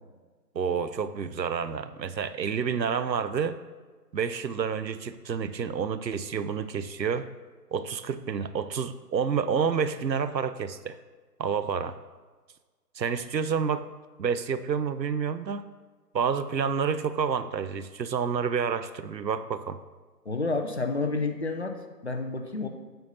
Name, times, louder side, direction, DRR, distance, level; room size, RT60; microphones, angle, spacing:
voice 1, 0.5-3.6 4.1-7.3 7.7-11.0 11.4-12.0 13.0-13.9 14.2-15.7 16.1-19.8, right 6 dB, 85° right, 12 dB, 0.7 m, -29 dB
voice 2, 20.3-21.8 22.0-22.7, left 3 dB, 40° left, 5 dB, 0.7 m, -29 dB
7.8 x 5.4 x 4.2 m, 1.4 s
figure-of-eight pair, 150°, 50 cm